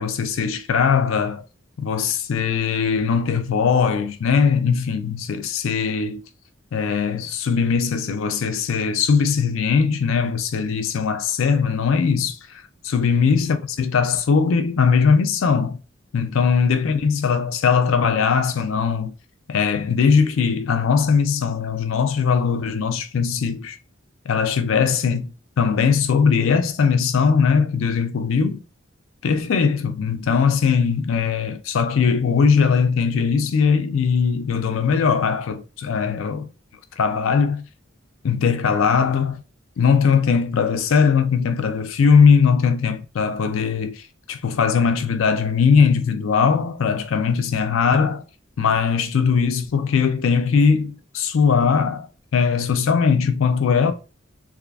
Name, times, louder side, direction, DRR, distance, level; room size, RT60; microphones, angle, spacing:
voice 1, 0.0-1.4 1.8-6.2 6.7-15.8 16.1-19.1 19.5-23.8 24.3-28.6 29.2-36.5 37.0-37.6 38.2-39.4 39.8-48.2 48.6-53.9, left 6 dB, 80° left, 0.4 m, -20 dB
3.5 x 2.4 x 2.3 m
head